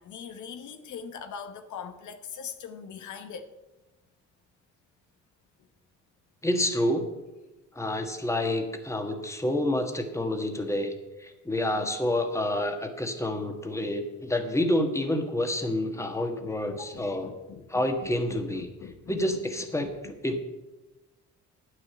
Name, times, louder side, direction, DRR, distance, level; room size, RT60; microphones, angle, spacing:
voice 1, 0.0-3.5 15.6-19.2 19.8-20.4, left 7 dB, 75° left, 8 dB, 1.1 m, -43 dB
voice 2, 6.4-7.1 7.7-17.3 17.7-18.7 19.1-20.4, left 1 dB, 10° left, 5 dB, 1.5 m, -28 dB
9.4 x 6.4 x 8.5 m, 1.1 s
cardioid pair, 90°, 30 cm